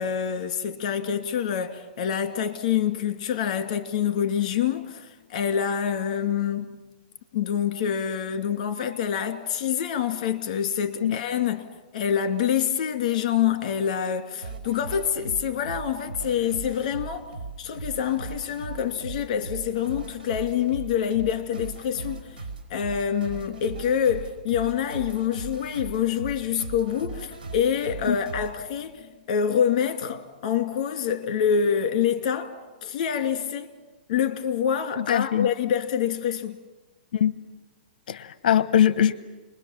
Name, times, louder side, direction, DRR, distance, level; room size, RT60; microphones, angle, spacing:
voice 1, 0.0-6.7 7.3-11.6 11.9-17.3 17.6-22.4 22.7-32.5 32.8-33.7 34.1-36.6, left 8 dB, 45° left, 2.4 m, -26 dB
sound 1, 14.4-28.5, right 3 dB, 65° right, 5.3 m, -38 dB
voice 2, 35.0-35.5 37.1-37.3 38.1-39.1, left 10 dB, 65° left, 0.9 m, -21 dB
29.0 x 21.5 x 7.4 m
hypercardioid pair, 160°, 5 cm